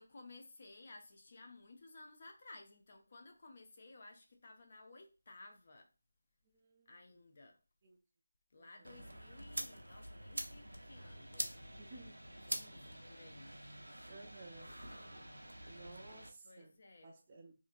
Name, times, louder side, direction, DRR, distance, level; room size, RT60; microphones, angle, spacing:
voice 1, 0.0-5.9 6.9-7.6 8.5-12.1 12.4-13.6 15.7-15.9 16.4-17.2, left 2 dB, 40° left, 0.5 m, -57 dB
voice 2, 6.5-6.9 7.8-8.0 8.9-9.1 11.8-12.2 14.1-14.8 15.7-16.7 17.0-17.5, right 3 dB, 25° right, 0.3 m, -55 dB
sound 1, 8.8-16.3, right 1 dB, 85° right, 0.6 m, -46 dB
2.7 x 2.5 x 2.5 m
figure-of-eight pair, 165°, 0 cm